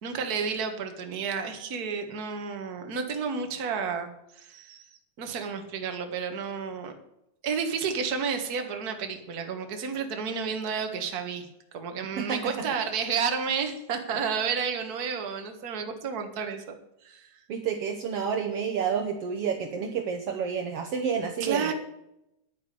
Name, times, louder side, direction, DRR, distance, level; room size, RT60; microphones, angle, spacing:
voice 1, 0.0-4.1 4.4-6.9 7.4-11.5 11.7-16.6 17.0-17.4 21.4-21.7, right 6 dB, 40° right, 5 dB, 1.7 m, -31 dB
voice 2, 12.2-12.7 17.5-21.7, right 6 dB, 65° right, 4 dB, 1.8 m, -30 dB
10.5 x 9.4 x 6.8 m, 0.82 s
omnidirectional pair, 3.3 m